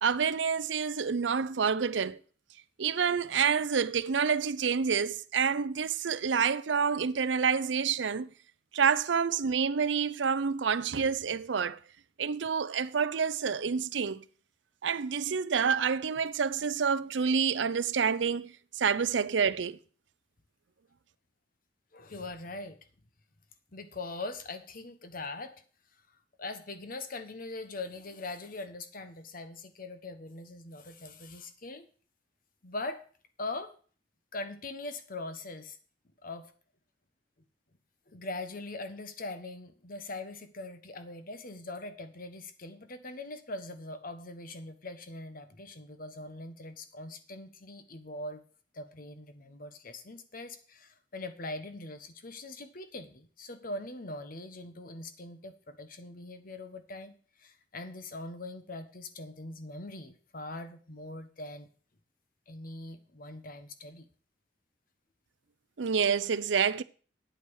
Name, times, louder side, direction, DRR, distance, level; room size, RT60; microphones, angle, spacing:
voice 1, 0.0-2.2 2.8-8.3 8.7-11.8 12.2-14.2 14.8-19.8 65.8-66.8, right 6 dB, 85° right, 0.6 m, -28 dB
voice 2, 21.9-22.8 23.7-25.6 26.4-31.8 32.6-33.0 33.4-33.7 34.3-35.8 36.2-36.5 38.1-48.4 48.7-61.7 62.5-64.1, left 2 dB, 50° left, 1.2 m, -42 dB
9.2 x 8.2 x 6.4 m
head